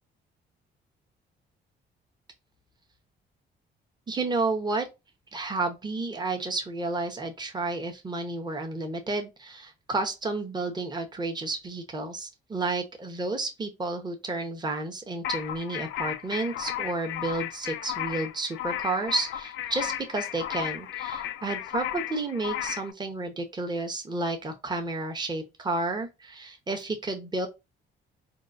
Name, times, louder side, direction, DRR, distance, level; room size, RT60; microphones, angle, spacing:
voice 1, 4.1-4.9 5.3-27.5, right 3 dB, 20° right, 0.9 m, -31 dB
sound 1, 15.2-22.9, left 12 dB, 85° left, 0.4 m, -34 dB
3.8 x 2.3 x 2.5 m
cardioid pair, 90°, 20 cm